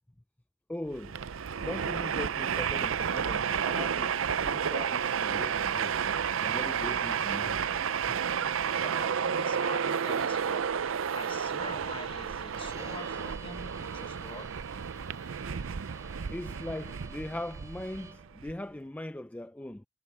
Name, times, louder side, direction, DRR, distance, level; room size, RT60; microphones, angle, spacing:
voice 1, 0.7-1.2 1.6-6.0 6.4-8.2 16.3-19.9, left 1 dB, 10° left, 0.4 m, -40 dB
Train, 0.9-18.5, right 7 dB, 70° right, 0.5 m, -31 dB
voice 2, 8.6-14.5, left 3 dB, 25° left, 1.4 m, -45 dB
Bowed string instrument, 12.5-18.4, right 4 dB, 15° right, 1.8 m, -51 dB
head